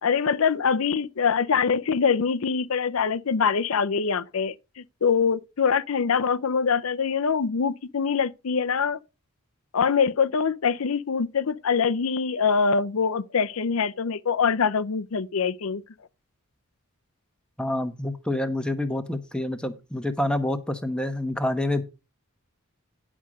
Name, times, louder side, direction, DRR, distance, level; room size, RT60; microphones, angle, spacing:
voice 1, 0.0-9.0 9.7-15.8, left 6 dB, 75° left, 0.6 m, -24 dB
voice 2, 17.6-21.8, left 1 dB, 5° left, 1.0 m, -27 dB
10.5 x 6.2 x 5.2 m
head